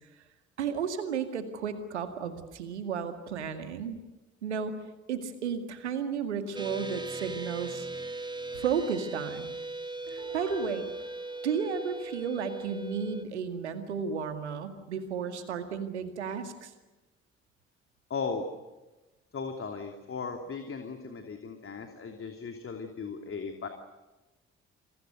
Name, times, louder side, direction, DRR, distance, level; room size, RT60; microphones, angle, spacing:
voice 1, 0.6-4.0 4.4-4.7 5.1-7.9 8.5-9.5 10.1-10.9 11.4-16.7, right 6 dB, 80° right, 9 dB, 2.1 m, -33 dB
sound 1, 6.5-13.2, right 2 dB, 15° right, 2.9 m, -38 dB
Piano, 10.1-12.8 13.1-13.2, right 5 dB, 65° right, 6.7 m, -48 dB
voice 2, 18.1-18.5 19.3-23.7, left 5 dB, 40° left, 5 dB, 3.0 m, -37 dB
27.5 x 26.5 x 6.6 m, 1.1 s
figure-of-eight pair, 40°, 34 cm